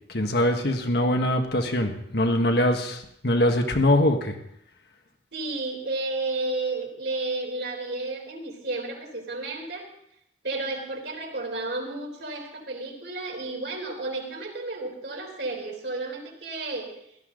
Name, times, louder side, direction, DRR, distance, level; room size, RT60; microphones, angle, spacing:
voice 1, 0.1-4.3, left 1 dB, 60° left, 4 dB, 1.7 m, -23 dB
voice 2, 5.3-9.9 10.4-16.9, right 2 dB, 70° right, 0 dB, 3.7 m, -32 dB
17.0 x 13.5 x 3.9 m, 0.74 s
head